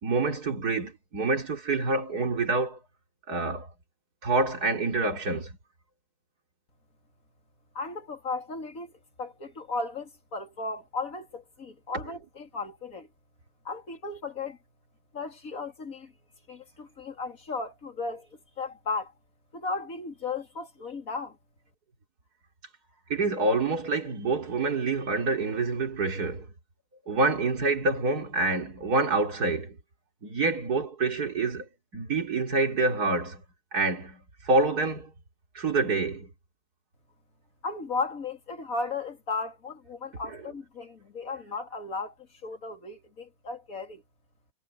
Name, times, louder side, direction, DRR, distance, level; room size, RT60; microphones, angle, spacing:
voice 1, 0.0-2.8 3.3-3.7 4.2-5.5 23.1-26.5 27.1-29.8 30.2-31.7 31.9-33.4 33.7-35.1 35.6-36.3, right 3 dB, 60° right, 3.8 m, -27 dB
voice 2, 7.7-8.9 9.2-13.1 13.6-14.6 15.1-16.1 16.5-19.1 19.5-21.4 37.6-44.0, left 3 dB, 50° left, 3.4 m, -35 dB
omnidirectional pair, 1.9 m